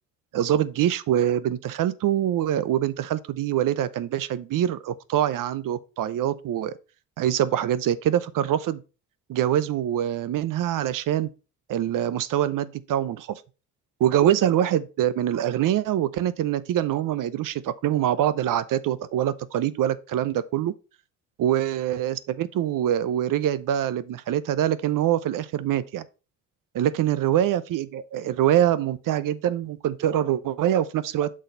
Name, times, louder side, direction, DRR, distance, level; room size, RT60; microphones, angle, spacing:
voice 1, 0.3-6.7 7.2-8.8 9.3-11.3 11.7-13.4 14.0-20.7 21.4-26.0 26.7-31.3, right 11 dB, 60° right, 0.7 m, -24 dB
6.4 x 3.9 x 5.4 m
cardioid pair, 85°, 36 cm